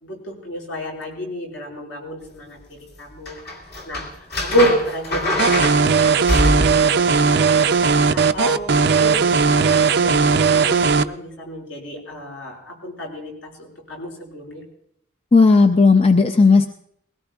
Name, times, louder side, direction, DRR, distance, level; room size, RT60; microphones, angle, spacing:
voice 1, 0.0-3.4 3.9-4.0 4.4-14.6, equal, 75° left, -1 dB, 5.8 m, -29 dB
sound 1, 3.3-6.9 9.2-9.3, left 1 dB, 55° left, 2.2 m, -23 dB
sound 2, 5.4-11.0, right 5 dB, 55° right, 0.5 m, -17 dB
voice 2, 15.3-16.7, left 4 dB, 30° left, 7 dB, 0.5 m, -13 dB
21.0 x 17.5 x 2.4 m, 0.69 s
head